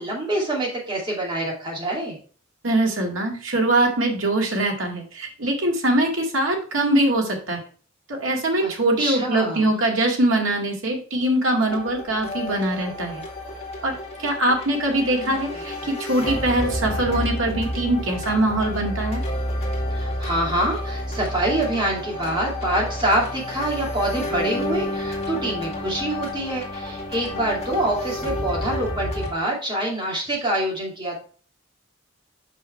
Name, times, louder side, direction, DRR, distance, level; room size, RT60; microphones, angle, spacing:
voice 1, 0.0-2.2 8.6-8.7 9.0-9.7 15.2-15.6 19.9-31.2, right 1 dB, 25° right, -2 dB, 2.6 m, -26 dB
voice 2, 2.6-7.6 8.1-13.2 13.8-19.2, right 1 dB, 90° right, 0 dB, 2.0 m, -22 dB
sound 1, 11.7-29.3, left 1 dB, 35° left, 2.0 m, -30 dB
6.1 x 5.4 x 4.4 m, 0.40 s
head